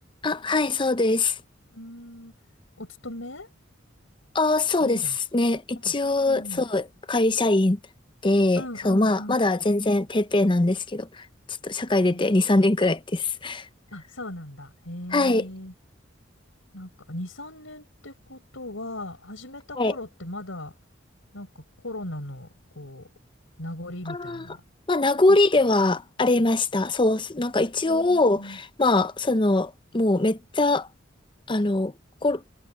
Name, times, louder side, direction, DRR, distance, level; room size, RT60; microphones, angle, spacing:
voice 1, 0.2-1.4 4.3-5.0 5.3-7.8 8.2-13.7 15.1-15.5 19.8-19.9 24.1-24.4 24.9-30.9 31.5-31.9 32.2-32.4, left 2 dB, 25° left, 0.7 m, -22 dB
voice 2, 1.7-2.3 2.8-3.5 4.8-5.2 5.8-6.7 8.6-9.5 12.1-12.4 13.9-15.7 16.7-20.7 21.3-23.1 23.6-24.6 25.3-25.4 27.6-28.6, left 1 dB, 90° left, 4.7 m, -38 dB
head